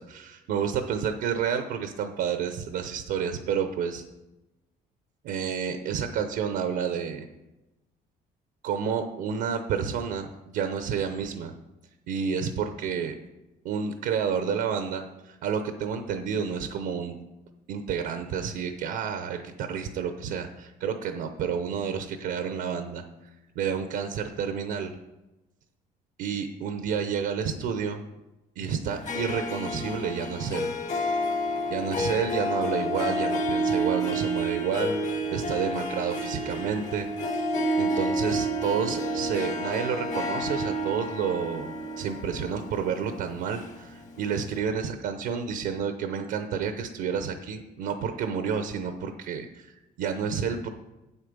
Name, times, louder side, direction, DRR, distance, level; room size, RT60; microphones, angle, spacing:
voice 1, 0.1-4.0 5.2-7.3 8.6-10.3 10.5-11.5 12.1-13.1 13.6-17.2 17.7-23.0 23.6-24.9 26.2-28.0 28.6-30.7 31.7-37.3 37.8-50.7, right 7 dB, 85° right, 7 dB, 0.8 m, -30 dB
Harp, 28.9-44.2, equal, 45° left, 1.3 m, -29 dB
8.6 x 8.2 x 5.2 m, 1.0 s
cardioid pair, 110°, 17 cm